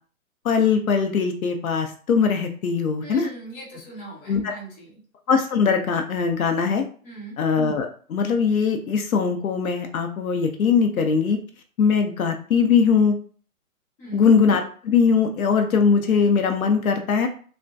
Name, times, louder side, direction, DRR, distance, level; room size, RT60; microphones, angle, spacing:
voice 1, 0.4-3.3 4.3-4.5 5.3-6.8 7.4-11.4 11.8-13.2 14.1-17.3, left 6 dB, 80° left, 5 dB, 0.7 m, -21 dB
voice 2, 3.0-5.0 7.0-7.4 14.0-14.3, right 2 dB, 15° left, -5 dB, 0.9 m, -40 dB
3.3 x 2.1 x 2.6 m, 0.44 s
hypercardioid pair, 150°, 42 cm